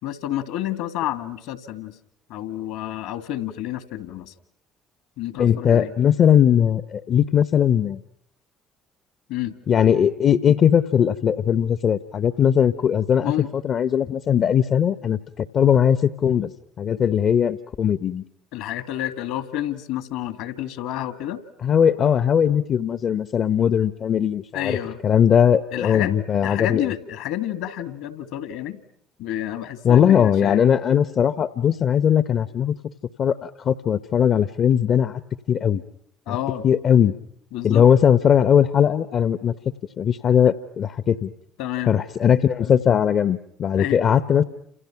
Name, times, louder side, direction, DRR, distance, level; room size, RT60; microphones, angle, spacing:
voice 1, 0.0-1.9 2.3-4.3 5.2-5.9 9.3-9.6 9.9-10.0 10.5-10.6 13.2-13.5 18.5-21.4 24.5-25.0 25.7-28.8 29.2-30.6 36.3-36.7 37.5-37.8 41.6-41.9 43.8-44.0, left 12 dB, 70° left, 12 dB, 2.2 m, -29 dB
voice 2, 5.4-8.0 9.7-16.5 16.8-18.2 21.6-24.8 25.0-26.8 29.8-32.7 33.2-35.2 35.5-35.8 36.3-36.4 36.6-37.1 37.6-39.5 40.0-41.3 41.9-44.4, left 8 dB, 50° left, 14 dB, 1.0 m, -19 dB
30.0 x 28.0 x 6.0 m, 0.70 s
hypercardioid pair, 55°, 0 cm